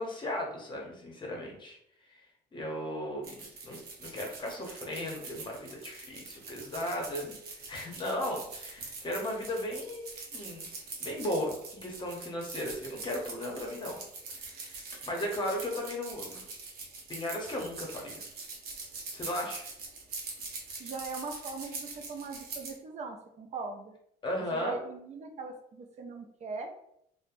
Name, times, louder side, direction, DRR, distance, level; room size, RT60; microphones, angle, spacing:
voice 1, 0.0-1.8 2.5-7.3 7.7-10.7 11.0-14.0 14.4-14.8 15.1-16.5 17.1-18.2 19.1-19.6 24.2-24.8, left 1 dB, 30° left, 0 dB, 0.8 m, -36 dB
sound 1, 3.2-22.7, right 4 dB, 65° right, 0.8 m, -43 dB
voice 2, 20.8-23.9 24.5-26.7, right 4 dB, 40° right, 4 dB, 0.4 m, -40 dB
3.1 x 2.1 x 2.5 m, 0.72 s
cardioid pair, 110°, 17 cm